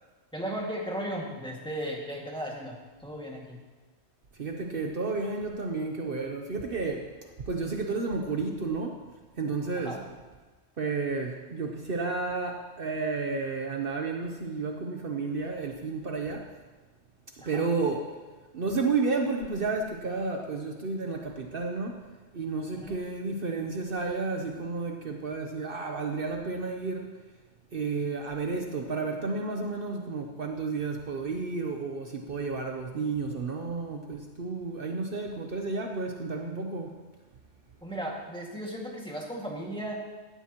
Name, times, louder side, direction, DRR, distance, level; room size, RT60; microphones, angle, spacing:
voice 1, 0.3-3.6 9.8-10.0 17.4-17.7 22.8-23.0 37.8-40.0, right 1 dB, 5° left, -3 dB, 2.0 m, -36 dB
voice 2, 4.3-9.0 9.4-10.0 10.8-16.5 17.4-18.2 18.5-22.1 22.3-27.2 27.7-36.9, right 4 dB, 55° right, 3 dB, 1.0 m, -32 dB
17.0 x 12.0 x 3.0 m, 1.3 s
omnidirectional pair, 1.1 m